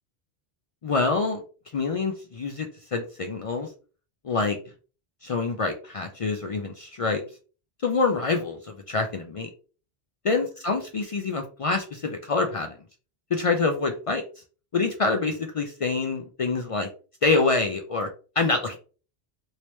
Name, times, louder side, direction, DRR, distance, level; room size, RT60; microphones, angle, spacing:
voice 1, 0.8-1.4 1.7-3.7 4.2-4.6 5.2-7.2 7.8-9.5 10.2-12.7 13.3-14.2 14.7-16.9 17.2-18.1 18.4-18.8, left 3 dB, 60° left, 4 dB, 0.3 m, -26 dB
3.0 x 2.7 x 3.1 m, 0.37 s
omnidirectional pair, 1.1 m